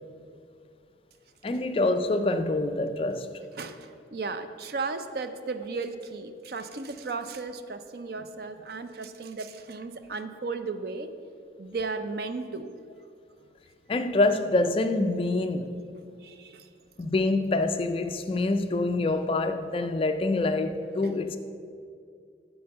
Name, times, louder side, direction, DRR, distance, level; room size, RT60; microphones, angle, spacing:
voice 1, 1.4-3.3 13.9-15.8 17.0-21.4, left 2 dB, 30° left, 0.3 m, -26 dB
voice 2, 3.6-11.1 11.6-12.7 16.2-16.7, right 4 dB, 55° right, 0.4 m, -35 dB
8.9 x 4.3 x 6.7 m
head